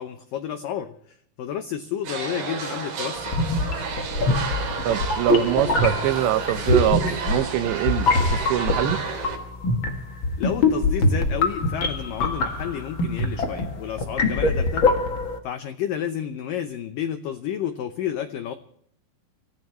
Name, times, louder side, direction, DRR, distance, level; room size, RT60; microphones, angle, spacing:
voice 1, 0.0-3.4 10.4-15.0 15.4-18.5, left 9 dB, 85° left, 9 dB, 1.9 m, -31 dB
sound 1, 2.0-9.4, right 5 dB, 55° right, 4.8 m, -31 dB
Sine Noise Droplets, 3.2-15.4, left 2 dB, 55° left, 1.3 m, -24 dB
voice 2, 4.8-9.0, right 12 dB, 80° right, 11 dB, 3.1 m, -24 dB
27.5 x 15.5 x 3.1 m, 0.65 s
omnidirectional pair, 5.2 m